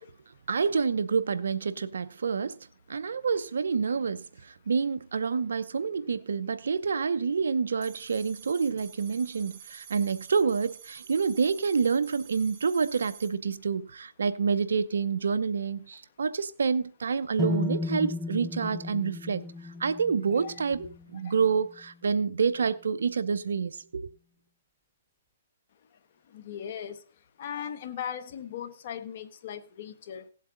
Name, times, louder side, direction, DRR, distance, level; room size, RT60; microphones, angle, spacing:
voice 1, 0.5-2.6 2.9-19.5 19.8-20.9 21.1-24.1, right 5 dB, 80° right, 0.8 m, -28 dB
sound 1, 7.8-13.3, right 8 dB, 45° right, 1.8 m, -49 dB
sound 2, 17.4-21.3, left 2 dB, 5° right, 1.2 m, -34 dB
voice 2, 20.4-20.9 21.2-21.3 25.9-26.0 26.3-30.3, left 9 dB, 55° left, 1.3 m, -39 dB
17.5 x 7.6 x 3.9 m
hypercardioid pair, 140°, 0 cm